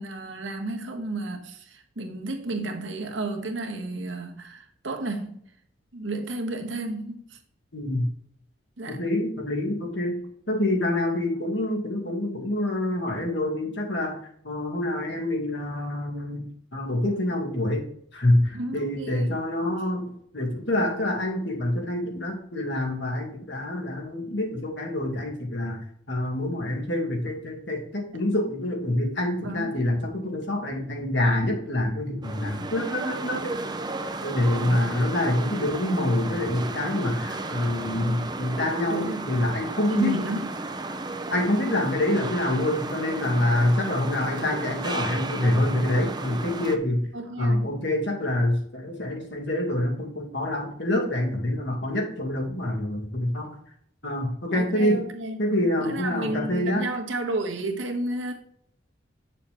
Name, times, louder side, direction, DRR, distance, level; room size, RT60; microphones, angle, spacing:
voice 1, 0.0-5.4 5.9-7.4 8.8-9.0 18.5-19.4 29.4-29.8 34.6-34.9 37.9-38.3 38.9-39.2 39.9-40.4 47.1-47.8 54.5-55.4 55.8-58.4, right 1 dB, 90° right, 1.5 m, -32 dB
voice 2, 7.7-8.1 8.9-10.2 10.5-14.2 14.4-20.1 20.3-33.6 34.2-40.1 41.3-47.1 47.4-53.5 54.0-55.0 55.4-56.9, left 1 dB, 65° left, 2.3 m, -26 dB
sound 1, 32.2-46.8, right 2 dB, 20° right, 0.6 m, -34 dB
8.5 x 6.7 x 3.5 m
head